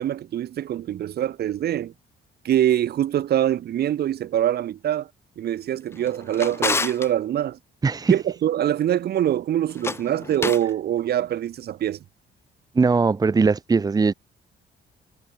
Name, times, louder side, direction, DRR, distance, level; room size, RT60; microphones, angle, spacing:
voice 1, 0.0-1.9 2.4-5.1 5.4-7.6 8.1-12.0, right 11 dB, 55° right, 1.6 m, -24 dB
Drawer open or close, 5.9-7.1 9.7-10.7, left 4 dB, 15° left, 0.4 m, -29 dB
voice 2, 7.8-8.1 12.7-14.1, right 4 dB, 20° right, 1.2 m, -19 dB
cardioid pair, 165°, 20 cm